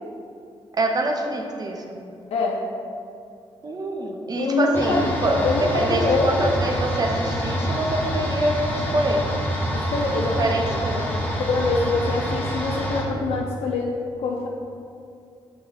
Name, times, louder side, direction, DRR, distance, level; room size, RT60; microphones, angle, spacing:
voice 1, 0.7-1.8 3.6-5.4 5.7-9.2 10.4-11.1, right 1 dB, 40° right, 2 dB, 0.7 m, -25 dB
voice 2, 4.4-5.2 5.4-6.6 9.9-10.6 11.4-13.9 14.2-14.5, left 3 dB, 90° left, -1 dB, 0.5 m, -24 dB
sound 1, 4.7-13.0, equal, 20° left, 1.1 m, -27 dB
7.7 x 3.1 x 3.9 m, 2.6 s
cardioid pair, 85°, 10 cm